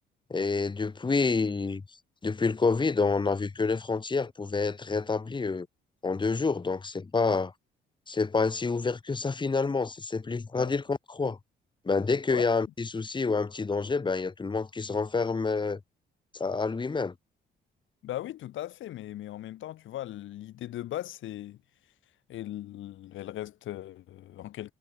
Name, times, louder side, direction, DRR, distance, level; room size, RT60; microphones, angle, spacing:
voice 1, 0.3-1.8 2.2-5.7 6.0-7.5 8.1-11.4 11.8-15.8 16.3-17.1, left 4 dB, 25° left, 1.6 m, -28 dB
voice 2, 18.0-21.6 22.3-24.7, left 13 dB, 75° left, 1.4 m, -38 dB
cardioid pair, 90°, 20 cm